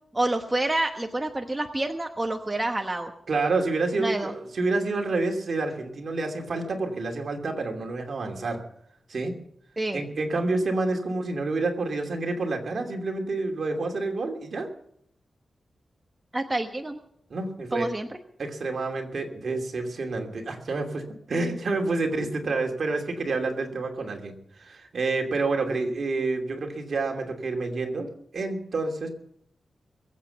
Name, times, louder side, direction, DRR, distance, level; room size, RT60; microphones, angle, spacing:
voice 1, 0.1-3.1 4.0-4.3 9.8-10.0 16.3-17.0 17.7-18.1, right 2 dB, 15° right, 4 dB, 1.1 m, -28 dB
voice 2, 3.3-8.6 9.1-9.3 9.9-14.7 17.3-17.9 18.4-21.0 21.3-29.1, right 3 dB, 60° right, 3 dB, 2.7 m, -28 dB
21.5 x 8.3 x 7.0 m, 0.71 s
wide cardioid pair, 120°, 0 cm